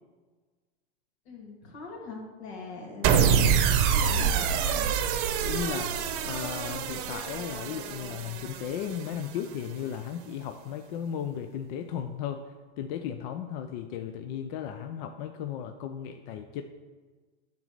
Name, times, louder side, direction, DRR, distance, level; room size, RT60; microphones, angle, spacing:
voice 1, 1.2-3.4 3.9-4.9, left 4 dB, 70° left, 0 dB, 2.7 m, -41 dB
sound 1, 3.0-9.4, right 7 dB, 50° right, 0.8 m, -26 dB
voice 2, 5.4-5.9 6.3-12.4 12.8-16.6, left 9 dB, 45° left, 6 dB, 0.5 m, -35 dB
9.4 x 4.0 x 6.6 m, 1.4 s
supercardioid pair, 145°, 33 cm